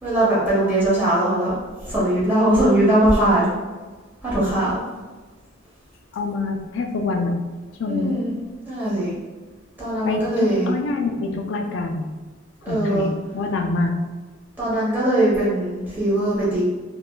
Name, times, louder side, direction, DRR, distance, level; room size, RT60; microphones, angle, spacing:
voice 1, 0.0-1.6 1.8-3.5 4.2-4.8 7.8-8.3 8.6-9.1 9.8-10.7 12.6-13.1 14.6-16.6, right 1 dB, 10° right, -10 dB, 1.3 m, -20 dB
voice 2, 6.1-7.3 7.8-8.2 10.0-12.1 12.7-14.0, left 3 dB, 65° left, 4 dB, 0.4 m, -25 dB
3.6 x 2.3 x 2.3 m, 1.3 s
head